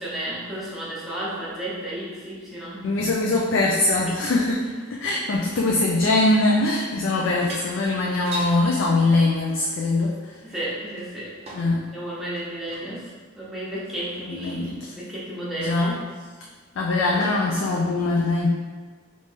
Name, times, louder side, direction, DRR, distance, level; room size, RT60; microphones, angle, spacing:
voice 1, 0.0-2.9 4.1-4.2 10.4-11.3 11.9-16.0 17.1-17.2, right 1 dB, ahead, -8 dB, 0.8 m, -33 dB
voice 2, 2.8-10.4 11.5-11.8 14.2-14.9 15.6-16.0 16.8-18.5, left 2 dB, 70° left, -1 dB, 0.4 m, -22 dB
sound 1, 5.1-5.8 7.0-7.1 7.4-8.6 10.1-11.8 12.2-12.9 13.5-13.6, right 1 dB, 30° right, 0.6 m, -39 dB
3.2 x 2.7 x 3.4 m, 1.5 s
head